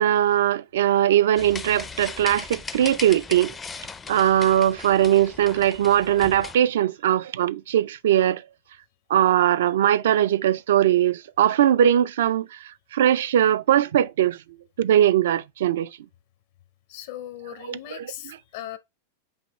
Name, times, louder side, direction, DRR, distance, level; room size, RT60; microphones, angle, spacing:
voice 1, 0.0-3.5 4.1-8.4 9.1-14.4 14.8-15.9 17.7-18.1, right 11 dB, 80° right, 0.3 m, -20 dB
sound 1, 1.4-6.6, left 5 dB, 15° left, 0.4 m, -38 dB
voice 2, 16.9-18.8, left 12 dB, 65° left, 0.7 m, -38 dB
5.4 x 2.8 x 3.1 m
supercardioid pair, 130°, 0 cm